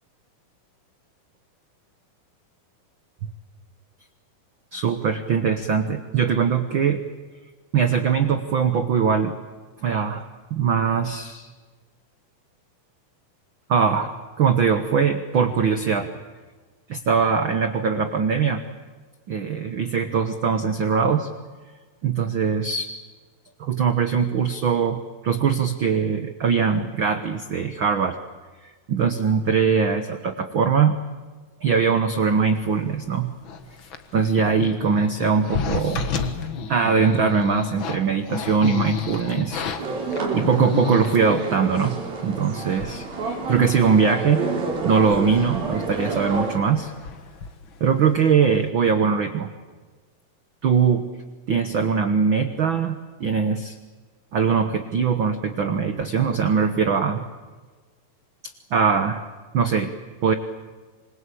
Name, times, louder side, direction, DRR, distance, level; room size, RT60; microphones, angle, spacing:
voice 1, 4.7-7.0 7.7-9.3 9.8-11.5 13.7-14.1 14.4-16.1 16.9-18.6 19.3-21.3 22.0-22.9 23.6-28.2 28.9-31.0 31.6-33.3 34.1-36.1 36.7-39.7 40.3-42.0 42.2-44.4 44.8-46.9 47.8-49.5 50.6-51.1 51.5-53.8 54.3-57.2 58.7-59.2 59.5-59.9 60.2-60.3, right 6 dB, 70° right, 8 dB, 1.1 m, -21 dB
sound 1, 33.4-41.5 42.2-42.3 42.5-43.1 43.4-43.5 44.0-44.3 44.6-48.2 48.4-48.7, left 6 dB, 50° left, 1.6 m, -32 dB
sound 2, 39.8-46.6, right 4 dB, 85° right, 5.6 m, -29 dB
26.5 x 22.0 x 8.5 m, 1.4 s
omnidirectional pair, 4.0 m